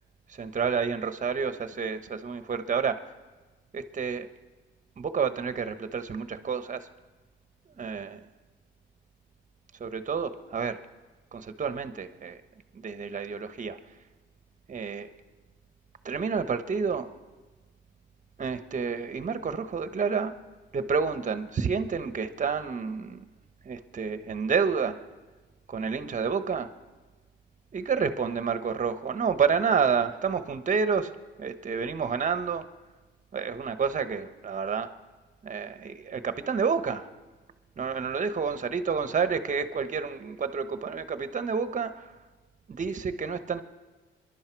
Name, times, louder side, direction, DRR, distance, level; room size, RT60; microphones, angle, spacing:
voice 1, 0.4-3.0 3.7-4.3 5.0-6.9 7.8-8.2 9.8-10.8 11.3-12.4 12.7-13.8 14.7-15.1 16.0-17.1 18.4-20.3 20.7-23.2 23.6-25.0 25.7-26.7 27.7-31.1 31.4-32.6 33.3-34.9 35.4-37.1 37.8-42.1 42.7-43.6, right 6 dB, 40° right, 10 dB, 1.1 m, -29 dB
26.5 x 11.5 x 4.6 m, 1.3 s
cardioid pair, 90°, 20 cm